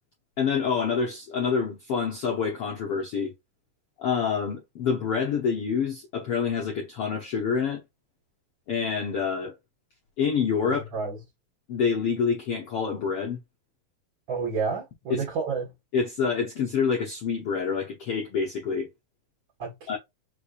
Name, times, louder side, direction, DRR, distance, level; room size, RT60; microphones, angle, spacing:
voice 1, 0.4-3.3 4.0-7.8 8.7-9.5 10.2-10.8 11.7-13.4 15.1-15.2 15.9-18.9 19.9-20.0, left 6 dB, 70° left, 1.3 m, -27 dB
voice 2, 10.6-11.2 14.3-15.7 19.6-19.7, right 5 dB, 45° right, 1.7 m, -30 dB
5.2 x 3.2 x 2.5 m
omnidirectional pair, 4.1 m